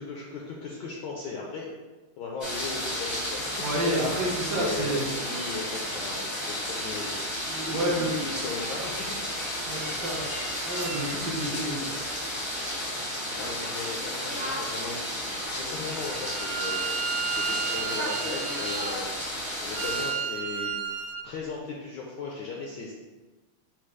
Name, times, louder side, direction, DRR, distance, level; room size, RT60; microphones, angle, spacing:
voice 1, 0.0-1.7 2.2-3.4 4.5-7.2 7.6-8.9 12.7-20.7 21.2-22.9, left 4 dB, 75° left, -2 dB, 1.0 m, -38 dB
sound 1, 2.4-20.2, equal, 35° left, 0.4 m, -33 dB
voice 2, 3.6-5.0 7.4-8.1 9.6-10.2 10.6-11.9, right 1 dB, 65° right, -4 dB, 1.2 m, -29 dB
Bowed string instrument, 15.8-21.2, right 7 dB, 85° right, 1.6 m, -33 dB
4.3 x 2.2 x 4.7 m, 1.3 s
omnidirectional pair, 2.3 m